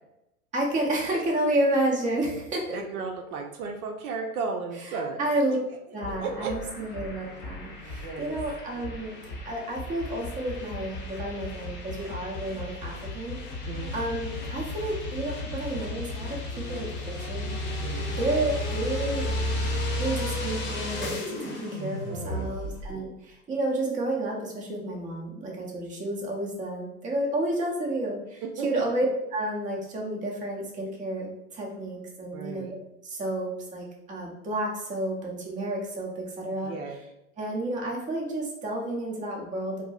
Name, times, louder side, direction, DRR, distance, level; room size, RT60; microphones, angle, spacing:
voice 1, 0.5-2.8 5.2-5.6 5.9-9.1 9.4-16.4 16.7-17.5 18.2-19.3 20.0-31.3 31.5-32.7 33.0-36.7 37.4-39.8, right 1 dB, 15° right, -2 dB, 0.7 m, -30 dB
voice 2, 2.7-5.3 6.2-6.5 7.9-8.4 13.7-13.9 17.8-18.2 21.7-22.6 28.6-28.8 32.3-32.7 36.6-37.0, right 5 dB, 70° right, 4 dB, 0.6 m, -35 dB
sound 1, 6.0-22.9, left 1 dB, 25° left, 0.8 m, -34 dB
4.5 x 2.0 x 2.4 m, 0.86 s
hypercardioid pair, 105°, 46 cm